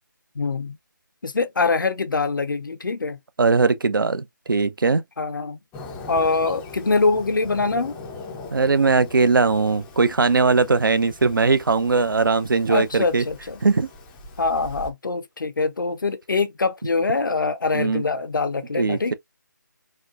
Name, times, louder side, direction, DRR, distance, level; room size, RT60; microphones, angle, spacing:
voice 1, 0.4-0.8 1.2-3.2 5.2-5.6 6.1-8.0 12.7-13.6 14.4-19.1, left 3 dB, 70° left, 0.6 m, -24 dB
voice 2, 3.4-5.0 8.5-13.2 13.6-13.9 17.7-18.0 18.8-19.1, right 4 dB, 80° right, 0.4 m, -20 dB
Fireworks, 5.7-14.9, left 3 dB, 5° left, 0.4 m, -41 dB
4.2 x 2.0 x 2.3 m
figure-of-eight pair, 155°, 11 cm